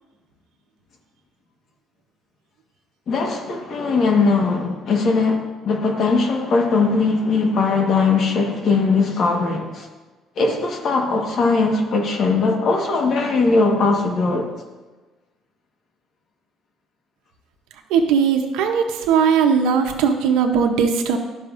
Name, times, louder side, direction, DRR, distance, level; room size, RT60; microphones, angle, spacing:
voice 1, 3.1-9.9 10.4-14.5, left 4 dB, 55° left, 2 dB, 1.3 m, -20 dB
voice 2, 17.9-21.2, right 6 dB, 85° right, 4 dB, 0.7 m, -18 dB
12.0 x 5.6 x 2.5 m, 1.2 s
cardioid pair, 90°, 0 cm